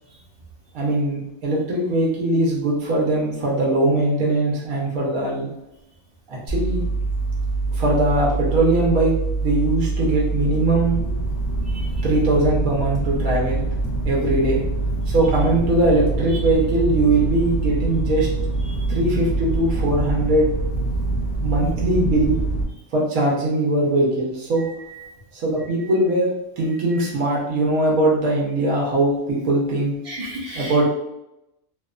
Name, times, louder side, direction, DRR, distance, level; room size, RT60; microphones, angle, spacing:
voice 1, 0.7-5.5 6.3-6.8 7.7-9.1 9.4-11.0 12.0-13.6 14.0-14.6 15.1-18.3 18.9-20.5 21.4-22.4 22.9-24.6 25.3-30.0 30.5-30.8, right 2 dB, 80° right, -4 dB, 1.1 m, -21 dB
sound 1, 6.5-22.6, right 2 dB, 40° left, 0.4 m, -24 dB
voice 2, 30.1-30.8, right 1 dB, 55° right, -4 dB, 0.6 m, -34 dB
2.8 x 2.1 x 2.3 m, 0.88 s
omnidirectional pair, 1.4 m